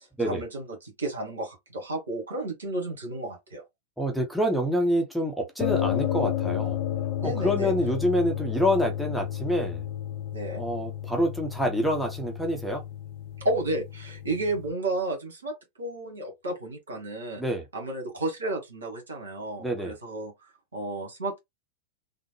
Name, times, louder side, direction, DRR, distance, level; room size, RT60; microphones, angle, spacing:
voice 1, 0.0-3.6 7.2-7.7 10.3-10.6 13.4-17.4 17.7-21.4, right 2 dB, 70° right, 1.4 m, -32 dB
voice 2, 4.0-6.8 7.2-9.8 10.6-12.8 17.4-17.6 19.6-19.9, equal, ahead, 0.8 m, -27 dB
sound 1, 5.6-14.7, left 11 dB, 45° left, 0.4 m, -32 dB
3.5 x 2.0 x 3.1 m
figure-of-eight pair, 90°, 0 cm